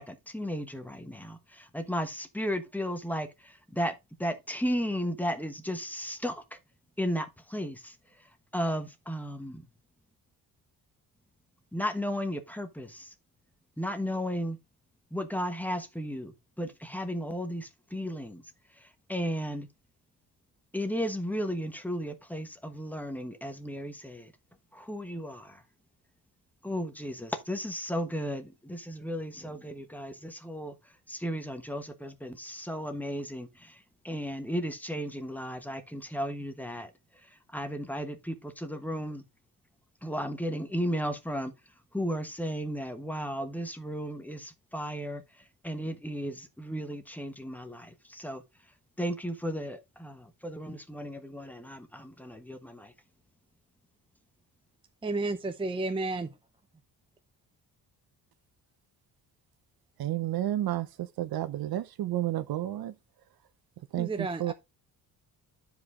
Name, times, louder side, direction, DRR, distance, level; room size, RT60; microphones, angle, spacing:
voice 1, 0.0-3.9 4.2-6.4 7.0-7.9 8.5-9.6 11.7-13.1 13.8-14.6 15.1-18.4 19.1-19.7 20.7-24.3 24.7-25.6 26.6-30.7 31.1-33.8 34.0-36.9 37.5-39.2 40.0-41.5 41.9-45.2 45.6-48.4 49.0-52.9, equal, 5° left, 1.0 m, -34 dB
voice 2, 55.0-56.3 64.0-64.5, right 3 dB, 15° right, 0.6 m, -31 dB
voice 3, 60.0-62.9 63.9-64.5, right 13 dB, 65° right, 0.8 m, -31 dB
10.5 x 5.0 x 3.7 m
cardioid pair, 145°, 39 cm